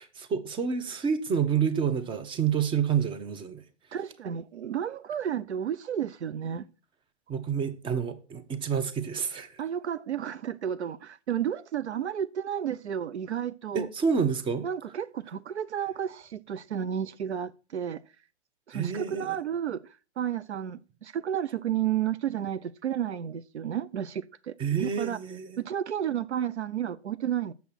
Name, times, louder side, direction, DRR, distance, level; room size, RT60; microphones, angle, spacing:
voice 1, 0.0-3.6 7.3-9.6 13.7-14.7 18.7-19.4 24.6-25.6, right 7 dB, 15° right, 0.9 m, -28 dB
voice 2, 3.9-6.7 9.6-13.9 14.6-18.0 18.7-24.5 24.8-25.2 25.6-27.5, right 9 dB, 75° right, 0.6 m, -32 dB
8.3 x 7.0 x 5.9 m
figure-of-eight pair, 115°, 34 cm